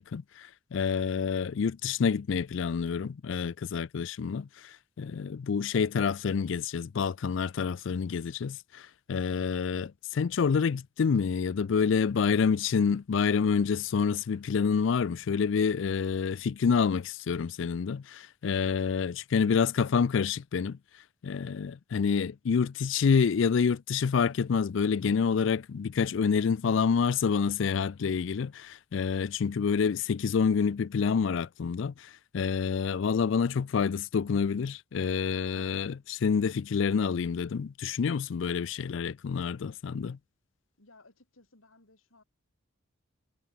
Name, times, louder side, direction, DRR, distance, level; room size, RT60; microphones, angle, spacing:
voice 1, 0.0-20.8 21.2-40.2, left 6 dB, 65° left, 0.4 m, -28 dB
voice 2, 40.8-42.2, left 2 dB, 80° left, 4.4 m, -59 dB
head